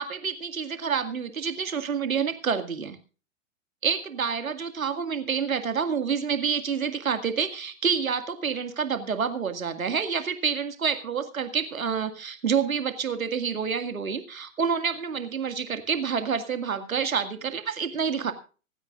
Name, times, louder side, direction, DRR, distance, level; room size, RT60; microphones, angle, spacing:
voice 1, 0.0-3.0 3.8-18.3, right 6 dB, 80° right, 9 dB, 2.1 m, -28 dB
25.5 x 9.6 x 2.5 m, 0.36 s
figure-of-eight pair, 115°, 41 cm